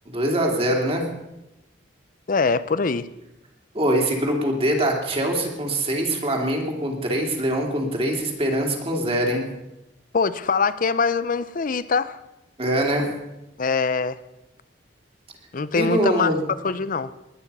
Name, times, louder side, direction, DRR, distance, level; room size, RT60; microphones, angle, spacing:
voice 1, 0.1-1.0 3.7-9.4 12.6-13.1 15.7-16.4, right 1 dB, 35° right, 1 dB, 2.7 m, -23 dB
voice 2, 2.3-3.1 10.1-12.2 13.6-14.2 15.5-16.3 16.6-17.1, left 4 dB, 50° left, 16 dB, 0.6 m, -23 dB
20.0 x 9.7 x 5.5 m, 0.95 s
head